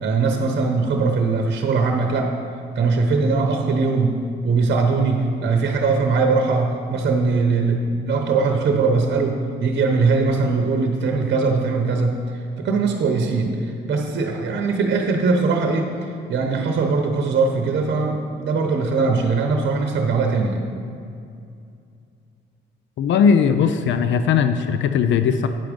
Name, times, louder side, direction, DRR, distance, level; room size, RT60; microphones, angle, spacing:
voice 1, 0.0-2.3 2.7-4.2 4.4-12.2 12.6-13.6 13.8-15.9 16.3-20.6, right 4 dB, 60° right, 3 dB, 0.9 m, -20 dB
voice 2, 23.0-25.5, left 6 dB, 70° left, 9 dB, 0.5 m, -18 dB
9.2 x 6.0 x 5.1 m, 2.5 s
cardioid pair, 90°, 20 cm